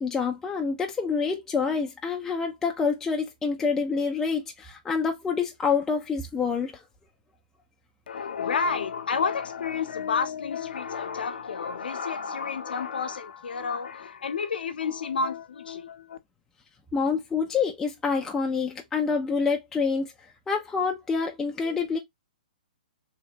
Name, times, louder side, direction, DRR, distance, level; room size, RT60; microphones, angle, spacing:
voice 1, 0.0-6.8 16.9-20.1 20.5-22.0, left 5 dB, 10° left, 0.4 m, -27 dB
voice 2, 8.1-16.2, left 5 dB, 80° left, 0.7 m, -30 dB
3.2 x 2.8 x 2.7 m
hypercardioid pair, 155°, 5 cm